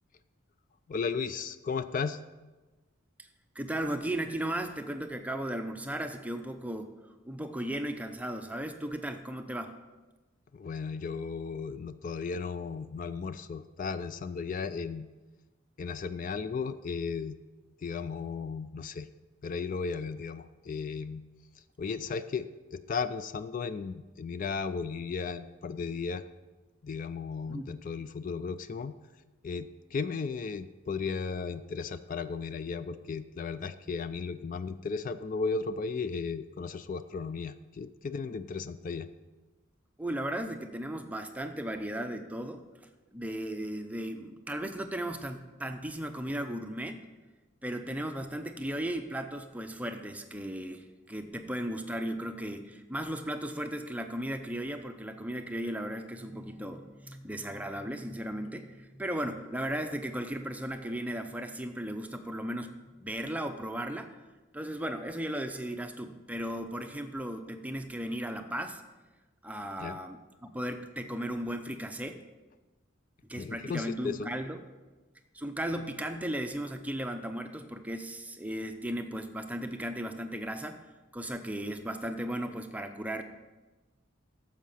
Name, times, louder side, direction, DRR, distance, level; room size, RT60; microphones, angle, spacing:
voice 1, 0.9-2.2 10.5-15.1 15.8-17.4 17.8-19.1 19.4-21.2 21.8-26.2 26.8-28.9 29.4-39.1 69.8-70.0 73.4-74.3, left 5 dB, 40° left, 12 dB, 0.3 m, -35 dB
voice 2, 3.6-6.9 7.2-9.8 27.5-27.8 40.0-42.6 43.1-47.1 47.6-62.7 63.0-64.1 64.5-68.8 69.4-72.2 73.3-74.6 75.3-80.8 81.1-83.2, right 1 dB, 5° right, 6 dB, 0.5 m, -36 dB
10.5 x 7.3 x 5.7 m, 1.2 s
head